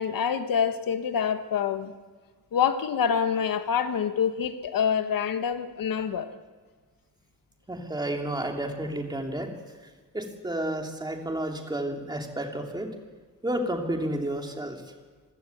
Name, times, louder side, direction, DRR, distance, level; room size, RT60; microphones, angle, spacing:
voice 1, 0.0-1.9 2.5-6.3, left 7 dB, 75° left, 9 dB, 1.6 m, -26 dB
voice 2, 7.7-9.5 9.8-12.9 13.4-14.8, right 1 dB, 10° right, 2 dB, 2.9 m, -31 dB
26.0 x 16.5 x 8.2 m, 1.5 s
wide cardioid pair, 155°, 34 cm